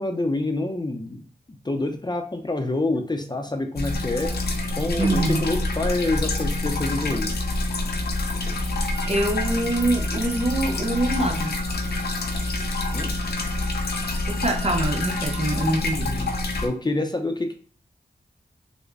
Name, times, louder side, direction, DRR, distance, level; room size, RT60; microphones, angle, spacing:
voice 1, 0.0-4.4 4.8-7.4 12.9-13.1 16.6-17.5, left 2 dB, 25° left, 5 dB, 0.6 m, -27 dB
sound 1, 3.8-16.7, left 2 dB, 70° left, 0.6 m, -27 dB
voice 2, 5.0-5.5 8.5-8.8 9.1-11.6 14.3-16.3, right 2 dB, 40° right, 5 dB, 0.6 m, -25 dB
Wind instrument woodwind instrument, 8.9-15.6, right 4 dB, 80° right, 0.5 m, -42 dB
3.5 x 2.1 x 3.3 m, 0.41 s
cardioid pair, 45°, 17 cm